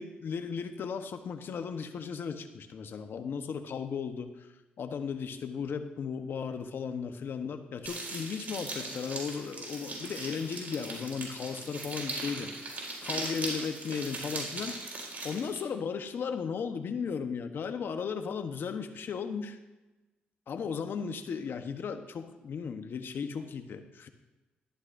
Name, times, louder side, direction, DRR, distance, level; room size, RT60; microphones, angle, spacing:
voice 1, 0.0-12.7 13.0-14.8 15.2-19.6 20.5-24.1, left 6 dB, 60° left, 8 dB, 1.0 m, -36 dB
sound 1, 7.9-15.6, right 2 dB, 45° right, 4.2 m, -39 dB
14.0 x 11.5 x 2.6 m, 1.1 s
supercardioid pair, 60°, 4 cm